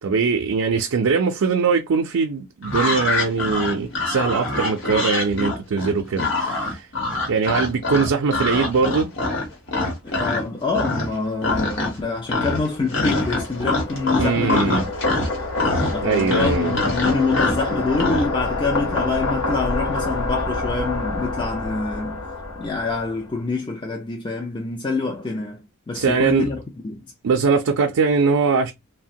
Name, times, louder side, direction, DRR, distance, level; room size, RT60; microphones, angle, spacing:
voice 1, 0.0-6.9 7.3-9.1 14.2-14.9 16.0-16.8 25.9-26.5 27.2-28.7, right 5 dB, 75° right, 0.4 m, -21 dB
sound 1, 2.6-10.4 10.7-11.2 11.4-12.0 12.3-18.3, left 2 dB, 55° left, 1.0 m, -24 dB
voice 2, 10.0-14.8 15.1-15.2 15.9-22.2 22.6-26.6 26.8-27.0, left 3 dB, 20° left, 0.4 m, -26 dB
sound 2, 12.7-23.3, left 2 dB, 80° left, 0.9 m, -28 dB
3.1 x 2.1 x 2.7 m
head